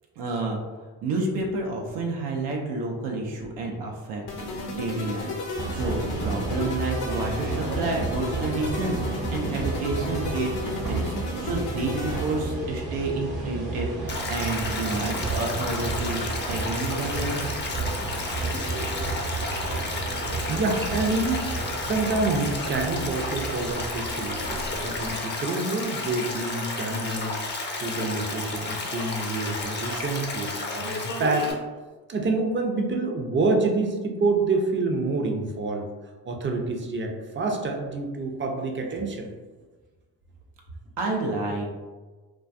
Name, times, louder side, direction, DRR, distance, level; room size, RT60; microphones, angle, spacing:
voice 1, 0.2-0.6 1.0-4.2 4.5-17.4 41.0-41.8, right 2 dB, 85° right, 0 dB, 0.5 m, -30 dB
sound 1, 4.3-12.6, left 2 dB, 55° left, 0.7 m, -34 dB
sound 2, 5.5-25.1, right 3 dB, 55° right, 0.9 m, -32 dB
Stream, 14.1-31.5, left 2 dB, 25° left, 0.5 m, -32 dB
voice 2, 20.1-21.5 21.8-27.4 27.8-31.5 32.1-35.9 36.3-39.3, right 3 dB, 25° right, 2 dB, 0.4 m, -27 dB
2.2 x 2.2 x 2.5 m, 1.3 s
hypercardioid pair, 50°, 47 cm